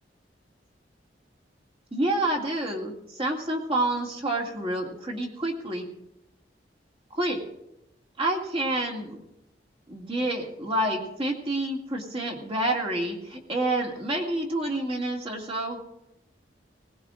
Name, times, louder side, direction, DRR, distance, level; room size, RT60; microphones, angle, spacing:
voice 1, 1.9-5.9 7.2-7.4 8.2-9.2 9.9-15.8, right 1 dB, 30° right, 0 dB, 2.2 m, -28 dB
20.0 x 18.5 x 2.5 m, 0.87 s
head